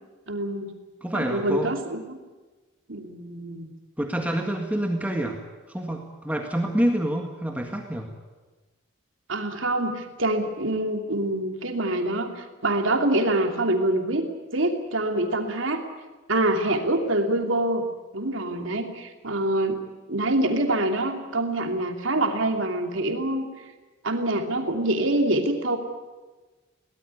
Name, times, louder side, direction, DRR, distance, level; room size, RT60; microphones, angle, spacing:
voice 1, 0.3-0.7 1.1-2.2 2.9-3.7 9.3-14.3 14.5-15.8 16.3-17.9 18.1-19.8 20.1-23.5 24.0-25.8, right 1 dB, 80° right, 4 dB, 2.9 m, -25 dB
voice 2, 1.0-1.7 4.0-5.4 5.7-8.1, right 1 dB, 5° right, 2 dB, 1.8 m, -27 dB
23.0 x 18.0 x 9.8 m, 1.2 s
head